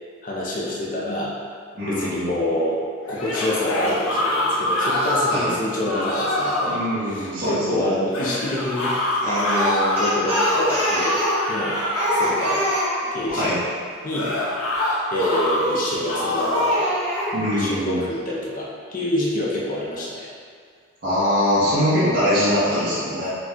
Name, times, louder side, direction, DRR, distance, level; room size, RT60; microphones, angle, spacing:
voice 1, 0.2-1.3 1.9-2.8 3.1-8.9 9.2-11.2 11.5-11.8 12.1-12.6 13.1-13.5 14.0-14.3 15.1-16.9 17.5-20.3 21.6-21.8, left 1 dB, 40° left, -6 dB, 0.6 m, -26 dB
voice 2, 1.7-2.4 5.3-5.5 6.6-7.9 13.4-13.6 17.3-18.0 21.0-23.3, equal, 50° right, -16 dB, 1.2 m, -22 dB
sound 1, 3.1-5.5 5.8-6.7 8.1-10.8 11.3-12.2 14.1-15.6 16.0-16.8, left 1 dB, 80° left, 0.8 m, -25 dB
Speech, 9.2-13.5 15.5-16.0 16.4-17.3, equal, 30° right, 1.1 m, -24 dB
4.8 x 2.3 x 3.6 m, 2.1 s
head